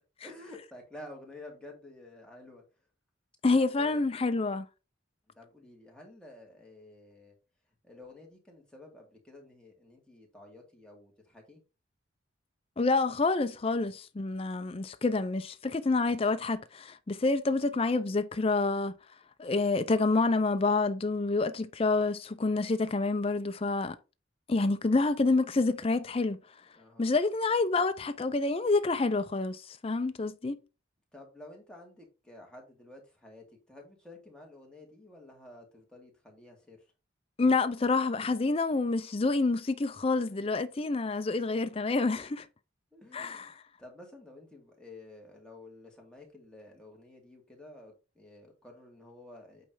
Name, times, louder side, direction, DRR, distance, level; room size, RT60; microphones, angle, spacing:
voice 1, 0.2-2.6 3.6-4.0 5.4-7.3 7.8-11.6 26.8-27.1 31.1-36.8 42.9-43.5 43.8-49.7, left 1 dB, 5° left, 2.2 m, -51 dB
voice 2, 3.4-4.7 12.8-18.9 19.4-24.0 24.5-26.4 27.0-30.6 37.4-42.5 43.1-43.6, left 3 dB, 30° left, 0.5 m, -28 dB
8.7 x 3.3 x 4.8 m
head